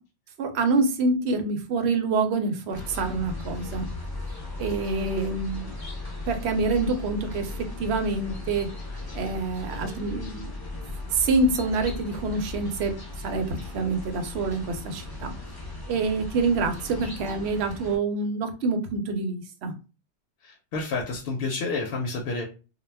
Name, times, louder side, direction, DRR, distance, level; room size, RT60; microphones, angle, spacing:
voice 1, 0.4-3.9 4.6-5.7 6.3-8.7 9.1-10.5 11.1-12.9 13.2-15.3 15.9-19.7, right 3 dB, 70° right, 6 dB, 0.8 m, -26 dB
sound 1, 2.7-18.0, left 2 dB, 25° left, 0.5 m, -37 dB
voice 2, 20.4-22.4, left 3 dB, 65° left, 0 dB, 0.7 m, -29 dB
2.2 x 2.1 x 3.2 m, 0.32 s
omnidirectional pair, 1.2 m